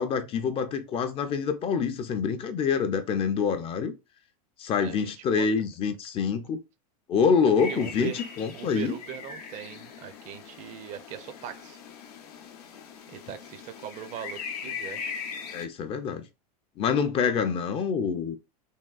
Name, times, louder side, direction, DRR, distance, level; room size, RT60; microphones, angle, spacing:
voice 1, 0.0-4.0 4.6-6.6 7.1-8.9 15.5-16.2 16.8-18.4, left 6 dB, 30° left, 0.4 m, -26 dB
voice 2, 4.8-5.5 7.7-8.3 8.5-11.8 13.1-15.1, right 10 dB, 40° right, 0.5 m, -40 dB
sound 1, 7.6-15.7, left 6 dB, 80° left, 0.7 m, -40 dB
3.5 x 2.3 x 2.3 m
supercardioid pair, 120°, 20 cm